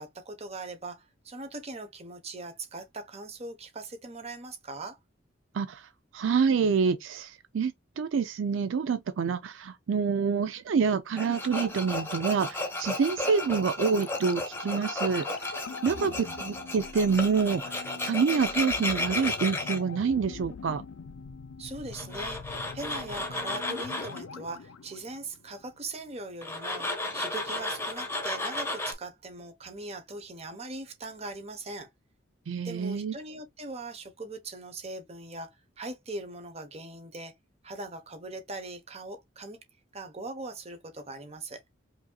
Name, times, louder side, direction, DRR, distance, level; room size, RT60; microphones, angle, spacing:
voice 1, 0.0-5.0 15.8-16.4 21.6-26.9 27.1-31.9 32.6-37.3 37.6-39.6 39.9-41.6, right 2 dB, 30° right, 0.9 m, -40 dB
voice 2, 5.5-15.3 15.8-20.8 32.5-33.1, right 5 dB, 70° right, 0.4 m, -27 dB
Tools, 11.2-19.8 21.9-24.2 26.4-28.9, left 2 dB, 10° left, 1.0 m, -33 dB
sound 1, 13.9-25.9 26.2-26.3, left 5 dB, 90° left, 0.4 m, -44 dB
5.0 x 2.7 x 2.2 m
head